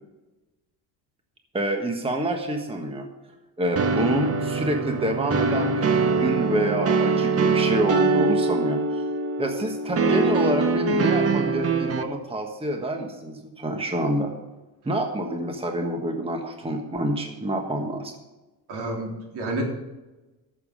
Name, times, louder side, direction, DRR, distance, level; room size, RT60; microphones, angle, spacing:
voice 1, 1.5-3.0 3.6-9.0 9.4-14.3 14.8-18.1, right 1 dB, 15° right, 3 dB, 1.4 m, -27 dB
sound 1, 3.8-12.0, right 3 dB, 35° right, 0.9 m, -23 dB
voice 2, 18.7-19.6, right 2 dB, 70° right, 0 dB, 3.4 m, -30 dB
14.0 x 7.0 x 5.1 m, 1.1 s
cardioid pair, 120°, 41 cm